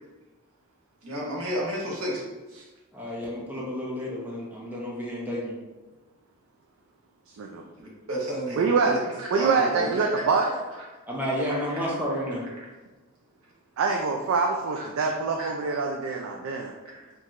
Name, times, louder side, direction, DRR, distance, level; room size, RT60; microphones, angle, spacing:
voice 1, 1.0-2.2 2.5-2.7 7.8-10.2 10.7-10.9 11.4-12.7 14.7-14.9 15.4-15.5 16.0-17.1, equal, 85° right, -4 dB, 1.1 m, -34 dB
voice 2, 2.9-5.6 11.1-12.4, equal, 10° right, -5 dB, 0.6 m, -31 dB
voice 3, 8.6-9.0 9.3-10.4 13.8-16.7, right 4 dB, 70° right, 1 dB, 0.3 m, -25 dB
4.4 x 2.9 x 2.5 m, 1.2 s
head